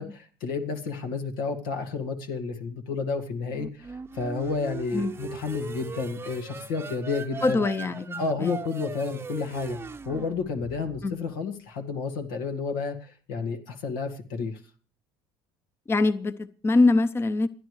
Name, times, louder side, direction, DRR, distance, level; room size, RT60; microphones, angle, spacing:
voice 1, 0.0-7.6 8.2-9.8 10.1-14.6, left 4 dB, 85° left, 2.0 m, -31 dB
sound 1, 3.5-11.2, right 4 dB, 20° right, 0.7 m, -39 dB
voice 2, 7.4-8.5 11.0-11.2 15.9-17.5, left 3 dB, 20° left, 0.7 m, -23 dB
28.5 x 10.5 x 3.3 m
supercardioid pair, 85°, 11 cm